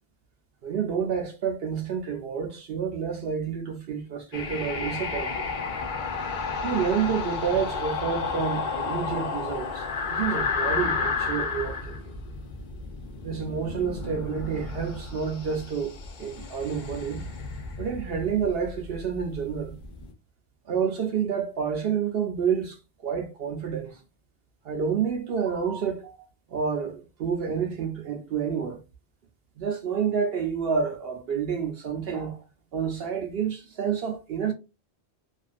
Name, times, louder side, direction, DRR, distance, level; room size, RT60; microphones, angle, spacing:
voice 1, 0.6-5.4 6.6-12.0 13.2-17.2 17.8-19.7 20.7-24.0 24.6-28.8 29.6-32.4 32.7-34.5, right 7 dB, 65° right, 0.8 m, -29 dB
sound 1, 4.3-20.1, left 4 dB, 55° left, 0.6 m, -32 dB
2.5 x 2.4 x 2.4 m
omnidirectional pair, 1.1 m